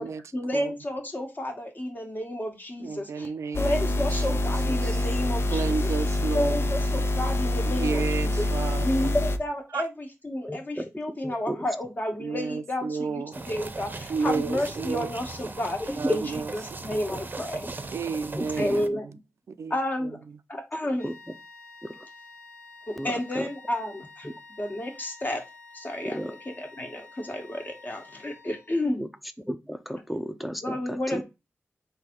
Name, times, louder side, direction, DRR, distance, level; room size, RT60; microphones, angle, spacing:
voice 1, 0.0-3.3 3.5-5.8 6.3-8.5 8.8-15.8 16.1-16.2 16.8-17.7 18.6-19.1 19.7-20.2 20.5-21.1 22.9-24.3 24.6-25.4 25.7-29.0 30.6-31.2, left 1 dB, 35° left, 1.4 m, -31 dB
voice 2, 2.8-4.4 4.7-5.0 5.5-6.7 7.6-9.1 9.7-9.8 12.2-13.3 14.1-15.1 16.0-16.4 16.7-17.0 17.9-19.2 19.6-19.8 20.0-20.2, right 5 dB, 80° right, 0.4 m, -32 dB
sound 1, 3.5-9.4, left 1 dB, 55° left, 0.5 m, -26 dB
voice 3, 10.5-10.9 11.2-11.6 14.5-14.7 15.9-16.2 18.3-19.0 21.0-21.1 21.8-22.1 23.0-23.5 24.2-24.3 26.0-26.3 29.0-29.1 29.5-31.2, equal, ahead, 0.6 m, -32 dB
sound 2, 13.3-18.9, right 3 dB, 40° right, 0.6 m, -38 dB
sound 3, 21.0-28.8, left 3 dB, 80° left, 1.7 m, -49 dB
3.8 x 2.7 x 4.3 m
cardioid pair, 55°, 5 cm